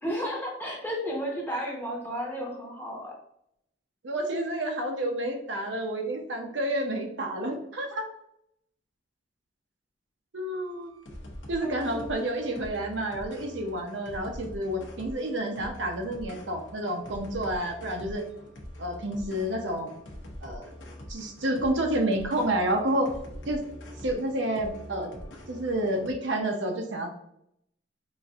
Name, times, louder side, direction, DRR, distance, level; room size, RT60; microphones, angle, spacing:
voice 1, 0.0-3.1 11.6-12.2, equal, 10° left, -2 dB, 0.8 m, -33 dB
voice 2, 4.0-8.1 10.3-10.9 11.5-18.2 18.8-19.9 20.4-20.7 21.1-23.1 23.5-23.6 24.0-25.1 25.5-27.2, right 1 dB, 70° right, 3 dB, 0.7 m, -29 dB
sound 1, 10.5-26.1, equal, 70° left, 0.8 m, -44 dB
5.0 x 2.6 x 2.3 m, 0.75 s
head